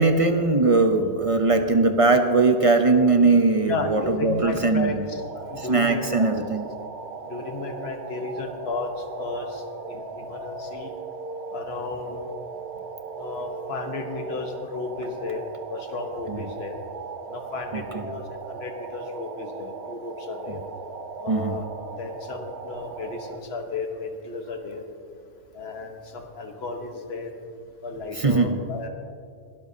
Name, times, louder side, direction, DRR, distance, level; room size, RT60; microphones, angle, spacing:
voice 1, 0.0-5.0 5.6-6.6 16.3-16.4 17.7-18.0 20.5-20.6 21.3-21.6 28.2-28.6, right 3 dB, 35° right, 6 dB, 0.6 m, -20 dB
voice 2, 3.6-6.0 7.3-8.9 9.2-10.9 11.5-12.2 13.1-15.4 15.7-16.8 17.3-20.6 21.2-21.7 22.0-24.8 25.5-27.3 27.8-28.9, left 3 dB, 60° left, 4 dB, 1.4 m, -33 dB
sound 1, 5.1-23.4, right 4 dB, 70° right, 1.0 m, -38 dB
21.0 x 12.5 x 2.7 m, 2.3 s
omnidirectional pair, 1.2 m